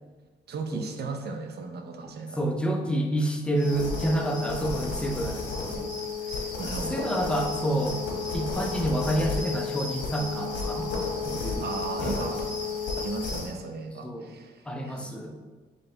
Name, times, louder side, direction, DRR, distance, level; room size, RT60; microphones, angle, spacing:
voice 1, 0.5-2.4 6.6-7.1 11.6-12.5 13.0-15.1, right 4 dB, 55° right, 5 dB, 0.6 m, -36 dB
voice 2, 2.4-5.9 6.9-8.0 8.3-10.9 11.3-11.6 12.0-12.3 14.0-14.3 14.7-15.3, right 1 dB, 5° left, 2 dB, 0.6 m, -28 dB
sound 1, 3.5-13.5, left 4 dB, 65° left, 1.2 m, -32 dB
4.0 x 3.3 x 3.9 m, 1.3 s
cardioid pair, 90°, 20 cm